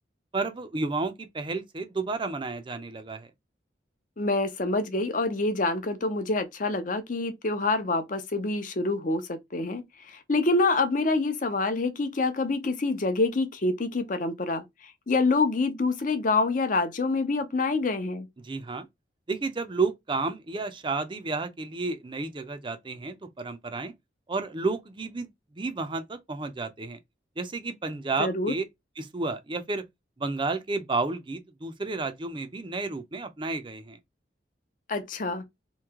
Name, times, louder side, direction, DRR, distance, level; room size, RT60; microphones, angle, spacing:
voice 1, 0.3-3.3 18.4-18.9 19.3-23.9 24.3-25.3 25.5-27.0 27.4-28.6 29.0-29.8 30.2-34.0, right 3 dB, 30° right, 0.5 m, -31 dB
voice 2, 4.2-9.8 10.1-14.6 15.1-18.3 28.2-28.5 34.9-35.4, left 3 dB, 45° left, 0.7 m, -26 dB
3.1 x 2.8 x 3.5 m
head